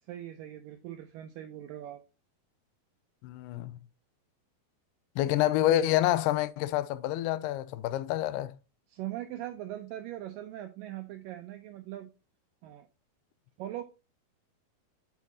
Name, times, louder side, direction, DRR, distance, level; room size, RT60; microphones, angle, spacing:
voice 1, 0.1-2.0 8.9-12.1 12.6-12.9 13.6-13.8, right 13 dB, 90° right, 1.9 m, -40 dB
voice 2, 3.2-3.8 5.2-8.5, left 13 dB, 90° left, 2.5 m, -27 dB
7.0 x 6.3 x 2.7 m
omnidirectional pair, 4.4 m